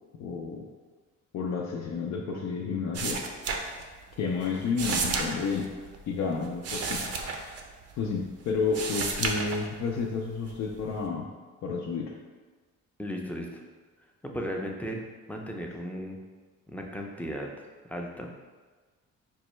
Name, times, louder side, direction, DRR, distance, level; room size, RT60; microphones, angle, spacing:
voice 1, 0.2-0.7 1.3-3.3 4.2-5.7 6.1-7.1 8.0-11.3 11.6-12.2, left 5 dB, 65° left, -2 dB, 0.5 m, -31 dB
sound 1, 2.9-4.2 4.4-8.2 8.5-10.0 10.5-11.0, right 4 dB, 55° right, 0.6 m, -32 dB
voice 2, 13.0-13.6 14.3-15.0 15.3-16.2 16.7-17.5 17.9-18.3, equal, 5° left, 0 dB, 0.5 m, -35 dB
5.2 x 2.2 x 3.0 m, 1.4 s
cardioid pair, 90°, 30 cm